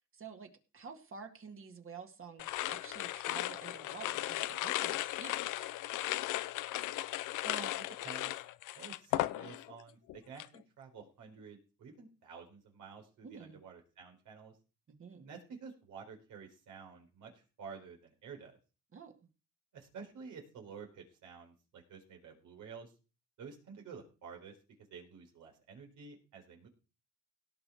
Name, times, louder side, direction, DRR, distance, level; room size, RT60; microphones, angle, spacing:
voice 1, 0.1-6.1 13.2-13.6 14.9-15.3 18.9-19.1, right 5 dB, 45° right, 4 dB, 2.2 m, -50 dB
sound 1, 2.4-9.8 10.1-10.6, left 16 dB, 85° left, 0.6 m, -36 dB
voice 2, 8.0-8.3 8.7-10.4 10.8-14.5 15.2-18.5 19.7-22.9 23.4-24.6 24.9-26.7, right 5 dB, 80° right, 2 dB, 4.2 m, -50 dB
17.5 x 6.6 x 4.7 m, 0.33 s
cardioid pair, 90°, 30 cm